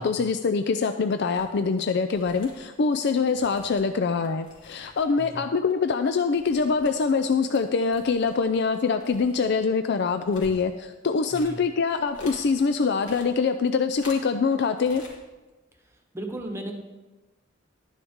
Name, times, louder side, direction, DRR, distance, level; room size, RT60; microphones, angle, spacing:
voice 1, 0.0-15.0, left 5 dB, 60° left, 8 dB, 0.4 m, -24 dB
sound 1, 1.3-1.7 2.0-5.3 5.5-7.6 7.9-12.4 12.8-14.5 14.8-15.2 15.5-15.6, left 2 dB, 75° left, 2.8 m, -49 dB
voice 2, 16.1-16.7, right 1 dB, 15° right, 3 dB, 1.1 m, -35 dB
12.0 x 10.0 x 3.6 m, 1.2 s
head